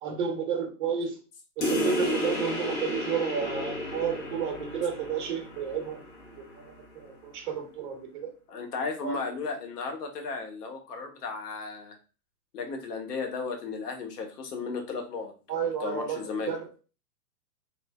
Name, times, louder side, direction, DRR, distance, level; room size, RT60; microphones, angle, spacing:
voice 1, 0.0-1.2 1.6-6.0 6.4-8.3 9.0-9.2 15.5-16.8, right 6 dB, 35° right, 2 dB, 0.8 m, -32 dB
sound 1, 1.6-6.7, left 1 dB, 45° left, 1.1 m, -32 dB
voice 2, 8.5-11.9 12.5-15.3 15.8-16.5, left 4 dB, 85° left, 3 dB, 0.9 m, -34 dB
3.1 x 2.1 x 2.2 m, 0.35 s
hypercardioid pair, 155°, 46 cm